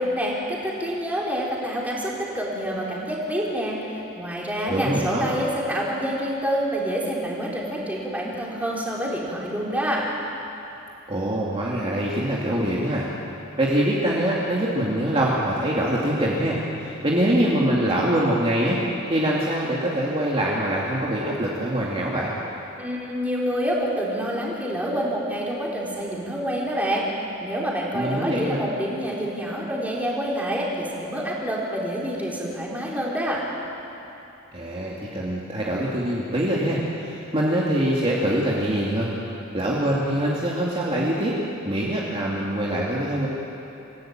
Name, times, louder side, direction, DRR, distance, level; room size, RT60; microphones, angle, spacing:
voice 1, 0.0-10.1 22.8-27.1 27.4-33.4, equal, 10° right, -4 dB, 4.0 m, -27 dB
voice 2, 4.7-5.3 11.1-13.1 13.6-18.8 19.1-22.3 27.9-28.6 34.5-39.1 39.5-41.4 41.6-43.3, right 1 dB, 30° right, -5 dB, 2.5 m, -24 dB
26.5 x 16.0 x 8.9 m, 2.9 s
head